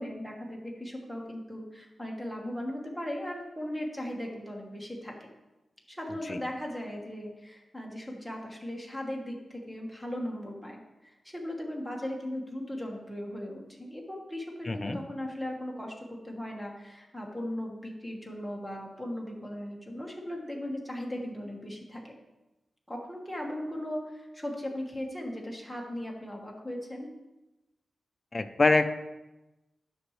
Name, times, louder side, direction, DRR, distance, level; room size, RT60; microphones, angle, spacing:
voice 1, 0.0-5.3 5.9-22.1 22.9-27.1, left 1 dB, ahead, 0 dB, 1.4 m, -38 dB
voice 2, 14.7-15.0 28.3-28.9, left 3 dB, 30° left, 9 dB, 0.5 m, -24 dB
11.0 x 6.1 x 3.2 m, 1.0 s
wide cardioid pair, 115°, 0 cm